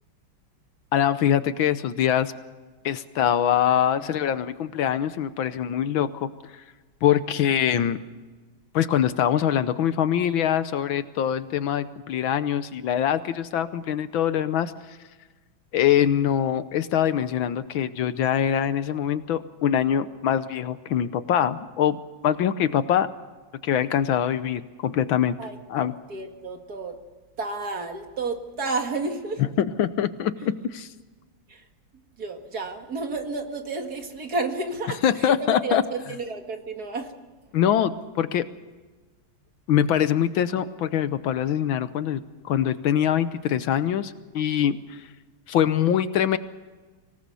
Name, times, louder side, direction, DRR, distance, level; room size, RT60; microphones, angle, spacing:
voice 1, 0.9-2.3 2.8-6.6 7.0-8.0 8.7-14.7 15.7-23.1 23.6-25.4 25.7-25.9 29.6-30.9 35.0-35.8 37.5-38.4 39.7-45.0 45.5-46.4, left 9 dB, 70° left, 13 dB, 1.6 m, -23 dB
voice 2, 25.4-27.0 27.4-29.4 31.5-31.7 32.2-37.1, right 3 dB, 45° right, 5 dB, 2.4 m, -31 dB
25.0 x 18.0 x 7.0 m, 1.3 s
omnidirectional pair, 2.3 m